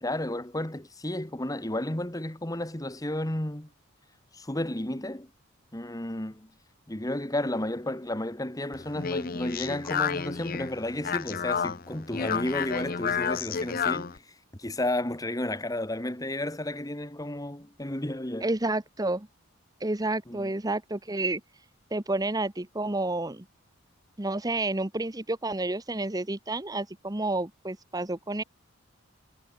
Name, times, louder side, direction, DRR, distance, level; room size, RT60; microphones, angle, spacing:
voice 1, 0.0-3.7 4.3-5.3 5.7-6.5 6.9-14.2 14.6-18.5 20.3-20.5, left 1 dB, 15° left, 1.6 m, -32 dB
Speech, 8.7-14.2, left 7 dB, 45° left, 0.6 m, -31 dB
voice 2, 18.4-19.3 19.8-21.4 21.9-23.4 24.2-28.4, right 2 dB, 20° right, 1.0 m, -30 dB
head